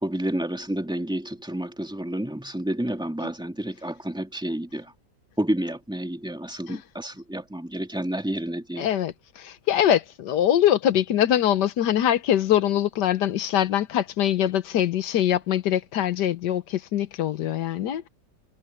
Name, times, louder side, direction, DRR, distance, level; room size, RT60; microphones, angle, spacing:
voice 1, 0.0-4.9 5.4-8.9, right 1 dB, ahead, 2.5 m, -30 dB
voice 2, 8.8-18.1, left 11 dB, 70° left, 1.5 m, -23 dB
omnidirectional pair, 2.0 m